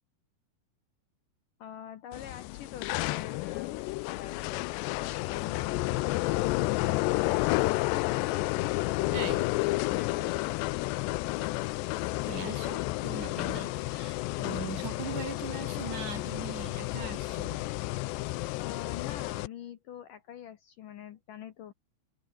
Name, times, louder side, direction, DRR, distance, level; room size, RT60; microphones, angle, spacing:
voice 1, 1.6-3.8 4.1-4.7 5.1-6.8 8.6-9.2 9.9-10.7 18.6-21.7, left 10 dB, 65° left, 2.4 m, -45 dB
sound 1, 2.1-19.5, left 20 dB, 85° left, 2.9 m, -31 dB
voice 2, 9.1-9.4 12.2-17.7, right 6 dB, 50° right, 4.6 m, -40 dB
omnidirectional pair, 4.9 m